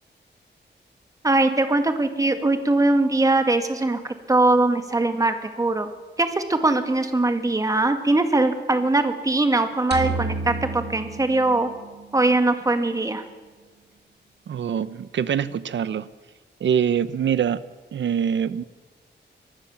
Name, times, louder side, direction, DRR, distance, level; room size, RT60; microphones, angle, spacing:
voice 1, 1.2-5.9 6.2-11.7 12.1-13.2, right 2 dB, 20° right, 7 dB, 2.1 m, -21 dB
sound 1, 9.9-12.2, right 3 dB, 65° right, 1.9 m, -31 dB
voice 2, 14.5-16.1 16.6-17.6 17.9-18.6, right 8 dB, 80° right, 15 dB, 1.0 m, -24 dB
24.5 x 19.5 x 7.2 m, 1.4 s
wide cardioid pair, 160°, 19 cm